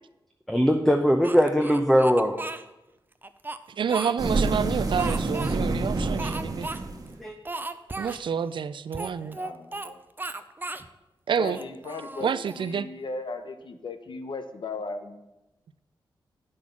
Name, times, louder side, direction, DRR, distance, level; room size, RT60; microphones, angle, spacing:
voice 1, 0.5-2.4 7.2-7.3, equal, ahead, 4 dB, 0.8 m, -21 dB
Speech, 1.2-2.6 3.2-4.5 5.0-5.6 6.2-6.8 7.1-7.2 7.4-8.2 8.9-9.9 10.2-10.9 11.4-12.7, right 2 dB, 25° right, 0.6 m, -36 dB
voice 2, 3.7-6.7 8.0-9.4 11.3-11.6 12.2-12.9, right 7 dB, 70° right, 15 dB, 0.4 m, -28 dB
sound 1, 4.2-7.2, right 3 dB, 45° right, 1.2 m, -27 dB
voice 3, 9.3-10.0 11.4-15.3, left 3 dB, 65° left, 9 dB, 0.8 m, -37 dB
8.8 x 6.3 x 5.8 m, 0.97 s
cardioid pair, 70°, 9 cm